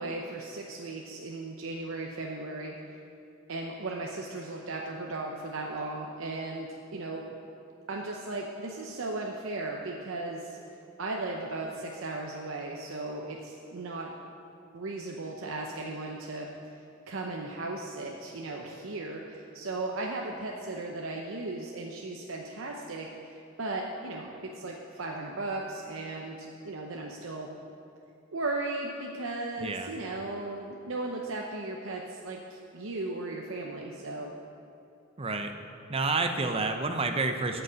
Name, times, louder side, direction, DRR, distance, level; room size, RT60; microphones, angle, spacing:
voice 1, 0.0-2.8 3.5-7.2 7.9-10.6 11.0-14.1 14.7-16.5 17.1-27.5 28.3-34.3, right 2 dB, 70° right, 0 dB, 0.8 m, -36 dB
voice 2, 29.6-29.9 35.2-35.5 35.9-37.6, right 3 dB, 25° right, 6 dB, 0.7 m, -29 dB
8.9 x 6.9 x 8.6 m, 2.7 s
head